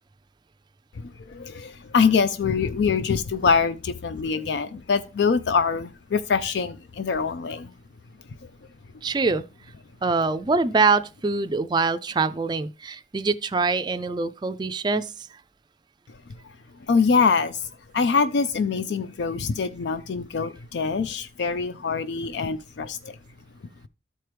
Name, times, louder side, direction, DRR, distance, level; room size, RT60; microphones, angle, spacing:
voice 1, 1.3-7.7 16.9-17.6 17.9-23.0, left 5 dB, 70° left, 0.4 m, -24 dB
voice 2, 9.0-9.4 10.0-15.1, right 4 dB, 25° right, 0.4 m, -24 dB
13.0 x 4.6 x 3.3 m
head